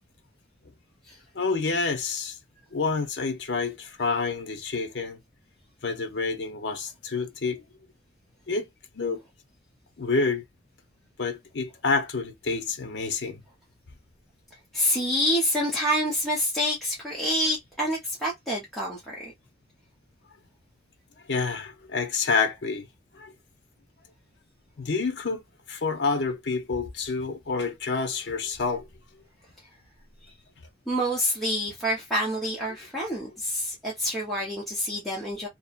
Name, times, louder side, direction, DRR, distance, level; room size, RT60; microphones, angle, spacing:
voice 1, 1.3-2.4 2.7-5.2 5.8-7.6 8.5-8.7 8.9-9.2 10.0-10.4 11.2-13.4 21.3-22.9 23.1-23.3 24.8-25.4 25.7-28.9, left 4 dB, 70° left, 0.7 m, -28 dB
voice 2, 14.7-19.3 30.9-35.5, equal, ahead, 0.7 m, -27 dB
2.7 x 2.1 x 2.4 m
head